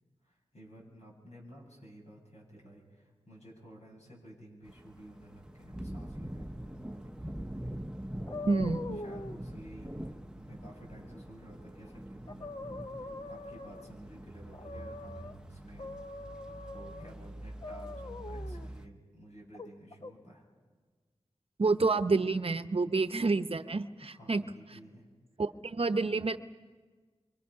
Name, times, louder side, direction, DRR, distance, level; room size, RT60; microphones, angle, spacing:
voice 1, 0.2-7.7 8.9-12.4 13.0-20.4 24.0-25.1, right 1 dB, 75° left, -2 dB, 7.2 m, -53 dB
sound 1, 4.7-18.9, right 1 dB, 5° right, 0.8 m, -44 dB
sound 2, 8.3-9.4 11.8-11.9 12.3-14.0 14.5-15.3 15.8-17.1 17.6-18.7 19.5-20.1, left 2 dB, 45° left, 0.8 m, -43 dB
voice 2, 8.4-9.0 21.6-24.4 25.4-26.4, right 3 dB, 55° right, 10 dB, 0.8 m, -29 dB
27.5 x 25.0 x 5.7 m, 1.4 s
wide cardioid pair, 65°, 11 cm